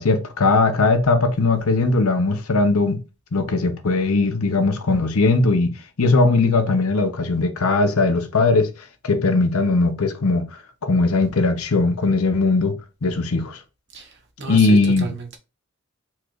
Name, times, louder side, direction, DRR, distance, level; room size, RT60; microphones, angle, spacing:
voice 1, 0.0-3.0 3.3-5.7 6.0-8.7 9.0-10.4 10.8-13.6 14.5-15.1, left 3 dB, 85° left, 0.8 m, -19 dB
voice 2, 13.9-15.4, right 3 dB, 50° right, 1.2 m, -33 dB
4.4 x 2.5 x 4.5 m
head